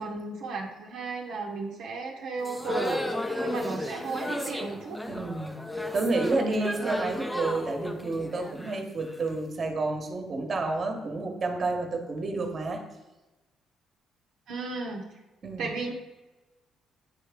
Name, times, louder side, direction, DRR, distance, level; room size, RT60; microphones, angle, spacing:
voice 1, 0.0-3.0 3.4-5.0 14.5-15.0 15.6-15.9, right 3 dB, 75° right, -1 dB, 0.8 m, -34 dB
sound 1, 2.4-9.4, left 1 dB, 5° left, 0.7 m, -34 dB
voice 2, 5.1-5.5 5.9-12.8 15.4-15.7, right 3 dB, 40° right, 4 dB, 1.2 m, -30 dB
9.0 x 3.3 x 3.6 m, 1.1 s
supercardioid pair, 70°, 0 cm